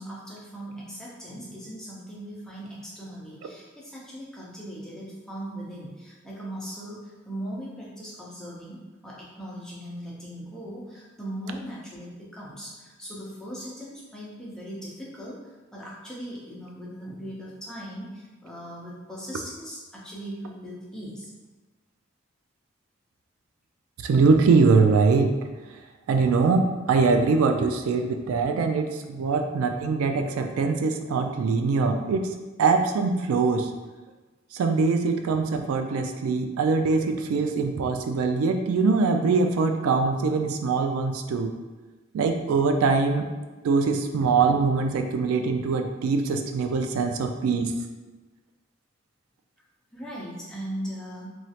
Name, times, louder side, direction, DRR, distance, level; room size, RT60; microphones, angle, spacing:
voice 1, 0.0-21.3 49.9-51.3, equal, 5° left, -6 dB, 0.5 m, -39 dB
voice 2, 24.0-25.4 26.1-33.7 34.5-41.5 42.1-43.3 43.6-47.7, right 4 dB, 85° right, 6 dB, 0.3 m, -23 dB
3.0 x 2.4 x 2.8 m, 1.2 s
head